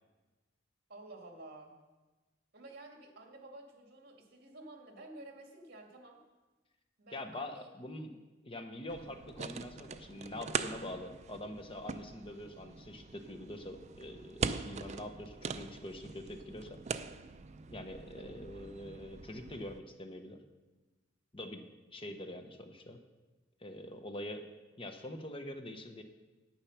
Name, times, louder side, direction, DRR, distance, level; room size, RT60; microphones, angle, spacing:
voice 1, 0.9-1.8 2.5-6.2 7.0-7.7 18.1-18.7, right 2 dB, 55° right, 2 dB, 2.3 m, -52 dB
voice 2, 7.1-8.2 8.4-17.0 17.7-20.4 21.3-23.0 23.6-24.5 24.8-26.0, left 1 dB, 30° left, 6 dB, 1.0 m, -44 dB
sound 1, 8.9-19.8, right 5 dB, 35° right, 0.5 m, -42 dB
10.0 x 9.0 x 5.9 m, 1.2 s
head